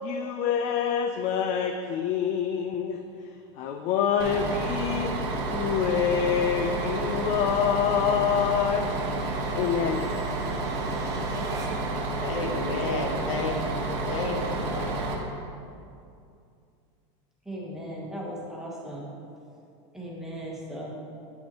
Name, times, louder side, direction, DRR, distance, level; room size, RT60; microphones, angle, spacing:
voice 1, 0.0-3.0 3.6-5.1 5.5-8.9 9.5-10.1, left 8 dB, 50° left, 6 dB, 0.4 m, -26 dB
sound 1, 1.8-12.0, right 3 dB, 20° right, 0.8 m, -49 dB
Bus, 4.2-15.1, right 2 dB, 65° right, 1.1 m, -30 dB
voice 2, 12.2-15.0, left 3 dB, 90° left, 1 dB, 1.0 m, -32 dB
voice 3, 17.4-19.1 19.9-20.9, equal, 5° right, -4 dB, 1.2 m, -37 dB
8.3 x 5.3 x 3.0 m, 2.5 s
supercardioid pair, 130°, 16 cm